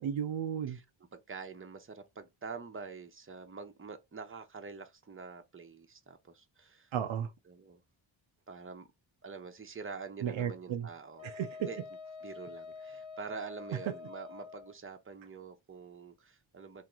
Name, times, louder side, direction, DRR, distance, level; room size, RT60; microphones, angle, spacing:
voice 1, 0.0-0.8 6.9-7.3 10.2-10.9 11.2-11.5, right 8 dB, 75° right, 0.6 m, -34 dB
voice 2, 1.1-6.9 7.5-7.8 8.5-8.9 9.2-11.3 11.6-11.8 12.2-16.8, right 5 dB, 25° right, 0.9 m, -46 dB
Wind instrument woodwind instrument, 11.2-14.7, left 5 dB, 70° left, 1.4 m, -47 dB
3.0 x 2.8 x 3.8 m
cardioid pair, 65°, 47 cm